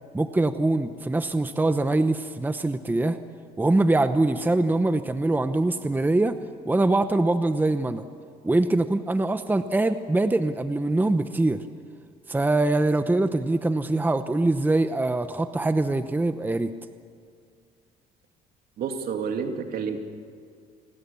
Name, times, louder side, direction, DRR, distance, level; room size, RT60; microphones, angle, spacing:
voice 1, 0.1-3.2 3.6-6.4 6.6-8.0 8.4-11.6 12.3-16.7, right 2 dB, 10° right, 10 dB, 0.9 m, -23 dB
voice 2, 18.8-20.0, right 6 dB, 60° right, 4 dB, 2.9 m, -29 dB
30.0 x 21.0 x 7.2 m, 2.2 s
cardioid pair, 110°, 17 cm